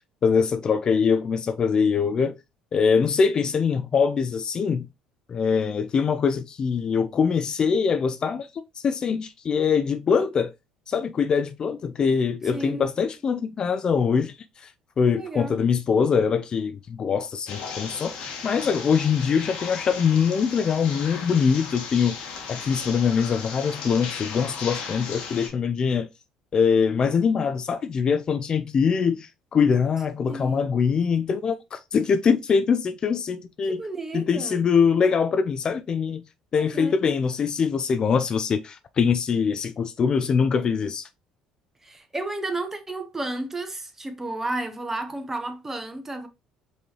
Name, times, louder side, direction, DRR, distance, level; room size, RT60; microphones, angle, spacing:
voice 1, 0.2-2.4 2.7-4.9 5.3-8.5 8.8-10.5 10.9-14.7 15.0-22.2 22.5-26.1 26.5-33.8 34.1-36.2 36.5-41.1, left 6 dB, 40° left, 0.4 m, -23 dB
voice 2, 12.5-12.9 15.1-15.6 30.3-30.7 33.6-34.6 36.5-37.0 41.8-46.3, right 2 dB, 20° right, 1.0 m, -32 dB
sound 1, 17.5-25.5, left 5 dB, 65° left, 1.3 m, -36 dB
5.1 x 3.2 x 2.9 m
hypercardioid pair, 65°, 2 cm